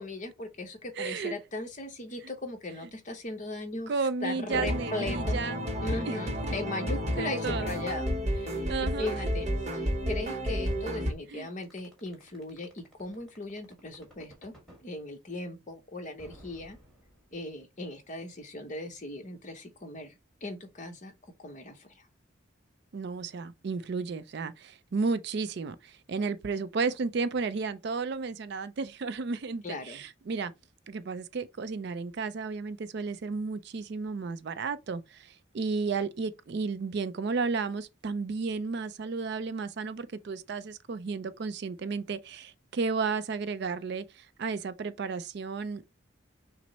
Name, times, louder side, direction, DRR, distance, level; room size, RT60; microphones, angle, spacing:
voice 1, 0.0-3.9 4.2-5.4 5.8-14.5 14.8-16.8 17.3-21.1 21.4-22.1 29.6-30.0, left 2 dB, 35° left, 0.9 m, -38 dB
voice 2, 1.0-1.3 3.9-5.6 5.9-6.2 7.2-7.7 8.7-9.2 11.3-11.5 22.9-30.5 30.9-45.9, right 4 dB, 50° right, 0.4 m, -33 dB
sound 1, 4.5-11.1, equal, 30° right, 0.7 m, -31 dB
sound 2, 11.6-14.9 16.2-17.6, equal, ahead, 1.5 m, -54 dB
6.0 x 2.0 x 4.1 m
head